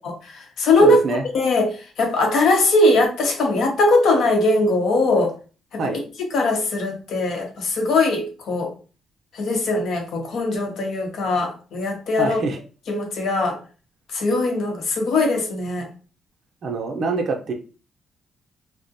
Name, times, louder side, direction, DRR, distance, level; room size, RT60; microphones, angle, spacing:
voice 1, 0.2-1.0 1.3-5.3 5.7-5.8 6.3-8.7 9.3-12.4 12.9-13.6 14.1-15.9, left 2 dB, 70° left, 1 dB, 0.8 m, -20 dB
voice 2, 0.8-1.2 5.8-6.0 12.2-12.6 16.6-17.5, right 3 dB, 55° right, 4 dB, 0.5 m, -25 dB
2.4 x 2.1 x 2.6 m, 0.36 s
cardioid pair, 90°, 0 cm